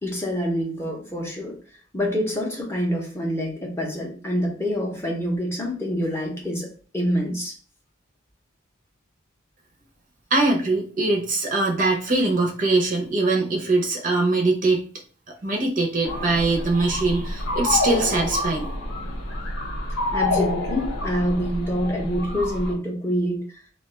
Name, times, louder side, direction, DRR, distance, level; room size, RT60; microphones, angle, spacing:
voice 1, 0.0-1.5 1.9-6.7 6.9-7.6 20.1-23.4, equal, 10° left, -2 dB, 0.6 m, -26 dB
voice 2, 10.3-14.8 15.3-18.7, right 3 dB, 40° right, 1 dB, 0.5 m, -22 dB
sound 1, 16.0-22.7, left 2 dB, 75° left, 0.8 m, -28 dB
2.3 x 2.3 x 3.8 m, 0.40 s
head